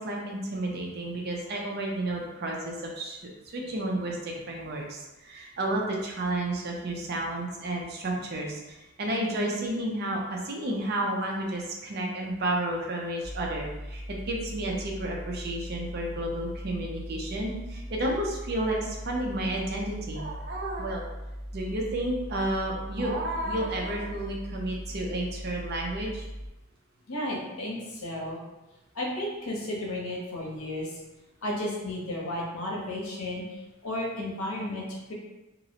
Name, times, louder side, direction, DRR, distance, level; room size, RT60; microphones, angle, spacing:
voice 1, 0.0-3.2 3.5-8.6 9.0-21.1 21.5-26.3, right 1 dB, 50° right, -1 dB, 0.5 m, -31 dB
sound 1, 13.2-26.5, equal, 35° left, 0.9 m, -39 dB
voice 2, 27.1-28.4 28.9-30.9 31.4-33.4 33.8-35.1, left 1 dB, 85° left, -3 dB, 0.7 m, -33 dB
2.5 x 2.0 x 2.8 m, 1.0 s
head